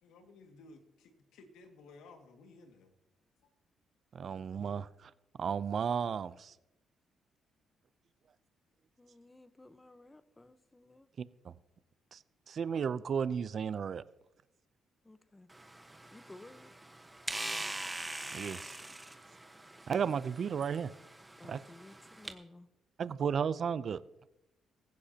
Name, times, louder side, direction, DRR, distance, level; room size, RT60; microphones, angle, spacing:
voice 1, 0.0-2.9, left 3 dB, 90° left, 4 dB, 2.0 m, -56 dB
voice 2, 4.1-5.1 5.4-6.5 11.4-11.5 12.1-12.2 12.5-14.0 18.3-18.7 19.9-20.9 21.5-21.6 23.0-24.0, right 7 dB, 55° right, 16 dB, 0.5 m, -33 dB
voice 3, 9.0-11.1 15.0-15.5 16.1-16.7 21.4-22.7, left 2 dB, 15° left, 12 dB, 0.9 m, -55 dB
sound 1, 15.5-22.3, right 1 dB, 10° right, 1.2 m, -43 dB
17.0 x 15.0 x 2.9 m, 0.90 s
cardioid pair, 90°, 0 cm